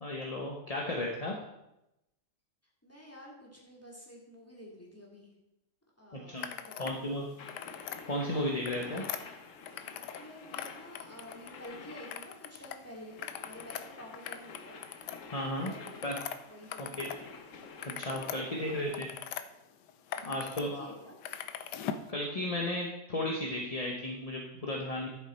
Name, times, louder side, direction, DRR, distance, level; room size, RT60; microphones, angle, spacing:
voice 1, 0.0-1.3 6.2-6.5 6.7-7.3 8.0-9.0 15.3-15.7 16.0-16.2 16.8-17.1 18.0-19.1 20.2-20.9 22.1-25.1, left 1 dB, 25° left, 0 dB, 0.9 m, -34 dB
voice 2, 2.8-5.3 6.0-7.0 10.2-14.8 15.6-16.0 16.5-17.3 18.3-18.9 20.1-21.2, equal, 10° left, -3 dB, 2.4 m, -50 dB
sound 1, 6.4-7.0 7.3-8.0 8.5-10.2 10.5-11.7 12.1-12.8 13.1-17.2 17.5-19.4 19.9-20.6 20.9-22.1, left 9 dB, 90° left, 1.3 m, -41 dB
sound 2, 7.4-18.8, left 4 dB, 55° left, 1.2 m, -50 dB
11.5 x 6.8 x 4.4 m, 0.89 s
omnidirectional pair, 1.7 m